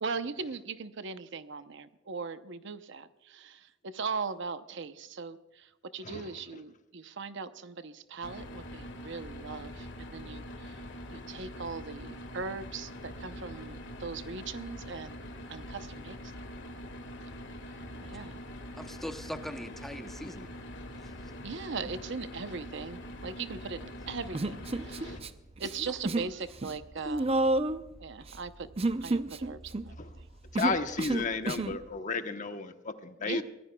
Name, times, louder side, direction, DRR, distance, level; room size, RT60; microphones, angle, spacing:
voice 1, 0.0-10.8 11.1-16.2 16.6-16.7 18.0-18.4 21.4-25.2 25.6-27.3 28.0-28.7 29.0-30.3 33.2-33.4, right 5 dB, 65° right, 11 dB, 0.8 m, -39 dB
sound 1, 8.2-25.2, equal, 65° left, 1.9 m, -44 dB
voice 2, 18.8-20.5 25.8-25.9 26.2-26.3, equal, ahead, 7 dB, 0.9 m, -41 dB
Human voice, 24.3-25.3 25.6-26.3 26.6-31.8, right 2 dB, 30° right, 0.6 m, -30 dB
voice 3, 24.9-25.3 30.0-30.1 30.5-33.4, left 4 dB, 40° left, 8 dB, 1.0 m, -33 dB
23.0 x 17.0 x 2.3 m, 1.0 s
head